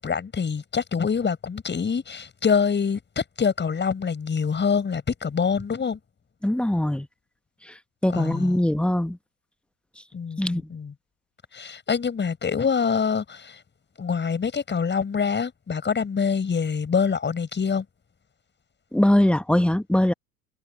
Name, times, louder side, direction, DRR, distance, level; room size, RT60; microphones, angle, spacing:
voice 1, 0.0-6.0 8.1-8.6 10.1-10.9 11.5-13.6 14.0-17.8, left 6 dB, 25° left, 6.6 m, -25 dB
voice 2, 6.4-7.1 7.7-7.8 8.0-9.2 10.4-10.6 18.9-20.1, left 1 dB, ahead, 1.2 m, -21 dB
figure-of-eight pair, 80°, 46 cm